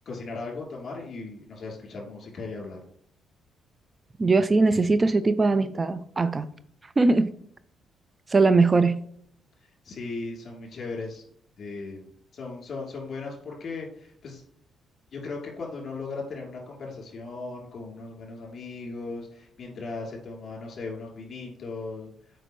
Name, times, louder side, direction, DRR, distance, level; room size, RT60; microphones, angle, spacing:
voice 1, 0.0-2.8 9.8-11.2 11.6-14.4 15.1-22.1, left 3 dB, 50° left, -1 dB, 2.9 m, -37 dB
voice 2, 4.2-6.5 7.0-7.3 8.3-8.9, right 3 dB, 25° right, 13 dB, 0.4 m, -20 dB
7.9 x 5.0 x 3.1 m, 0.65 s
cardioid pair, 90°, 0 cm